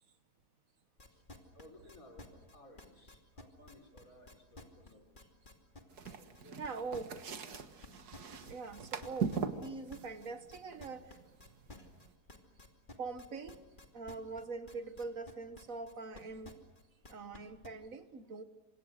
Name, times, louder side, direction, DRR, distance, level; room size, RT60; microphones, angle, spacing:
sound 1, 1.0-7.9 8.1-17.7, left 2 dB, 30° left, 2.8 m, -53 dB
voice 1, 1.5-5.3 6.1-7.6, left 1 dB, 60° left, 3 dB, 4.4 m, -59 dB
sound 2, 5.9-12.1, right 6 dB, 85° right, 2.0 m, -42 dB
voice 2, 6.6-7.1 8.5-11.2 13.0-13.6 13.9-16.6 17.1-18.4, right 4 dB, 60° right, 10 dB, 1.7 m, -43 dB
28.5 x 26.0 x 6.5 m, 1.1 s
omnidirectional pair, 1.6 m